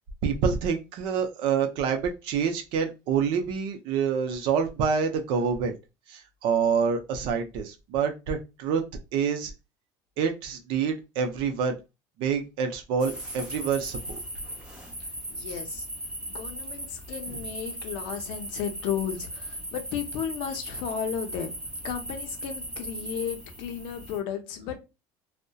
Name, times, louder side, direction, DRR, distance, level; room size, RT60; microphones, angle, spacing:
voice 1, 0.2-5.7 6.1-8.8 9.1-9.5 10.2-11.8 12.2-14.2 17.3-17.4, right 6 dB, 60° right, 5 dB, 0.5 m, -27 dB
sound 1, 13.0-24.2, right 1 dB, 10° right, 0.7 m, -38 dB
voice 2, 15.0-15.9 16.3-21.6 21.8-24.8, left 8 dB, 65° left, 7 dB, 0.5 m, -34 dB
2.6 x 2.1 x 2.2 m, 0.26 s
cardioid pair, 140°, 9 cm